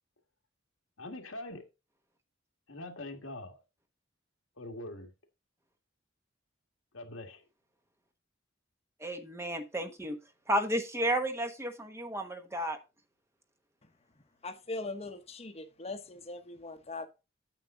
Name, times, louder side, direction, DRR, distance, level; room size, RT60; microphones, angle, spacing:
voice 1, 1.0-1.7 2.7-3.6 4.6-5.1 6.9-7.4, left 2 dB, 90° left, 1.9 m, -43 dB
voice 2, 9.0-10.2 10.5-12.8, right 1 dB, 15° right, 1.1 m, -32 dB
voice 3, 14.4-17.1, left 2 dB, 30° left, 1.1 m, -40 dB
9.0 x 7.4 x 3.8 m
head